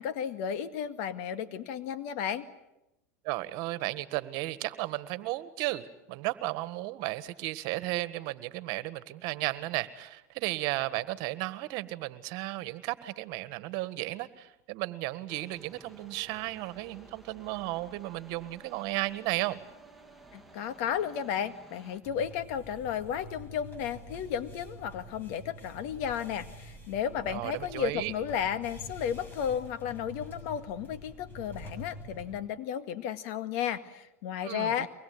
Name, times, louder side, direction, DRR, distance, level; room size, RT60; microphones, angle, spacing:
voice 1, 0.0-2.5 20.3-34.9, left 8 dB, 65° left, 10 dB, 2.0 m, -33 dB
voice 2, 3.2-19.6 27.3-28.1 34.4-34.9, right 18 dB, 60° right, 14 dB, 1.6 m, -34 dB
sound 1, 15.3-22.0, right 2 dB, ahead, 2.6 m, -54 dB
sound 2, 22.0-32.4, equal, 25° left, 7.0 m, -47 dB
24.0 x 20.5 x 9.7 m, 0.92 s
hypercardioid pair, 105°, 8 cm